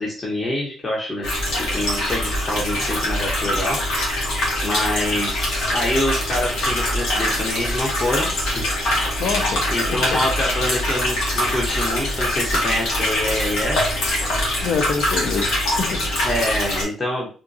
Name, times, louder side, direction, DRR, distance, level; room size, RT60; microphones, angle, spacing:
voice 1, 0.0-3.8 4.6-8.6 9.7-13.9 16.2-17.3, left 1 dB, 25° left, 1.1 m, -26 dB
sound 1, 1.2-16.8, left 1 dB, 85° left, 1.4 m, -23 dB
voice 2, 9.2-10.2 14.6-16.1, left 5 dB, 70° left, 0.5 m, -26 dB
3.7 x 2.5 x 2.6 m
cardioid pair, 90°, 0 cm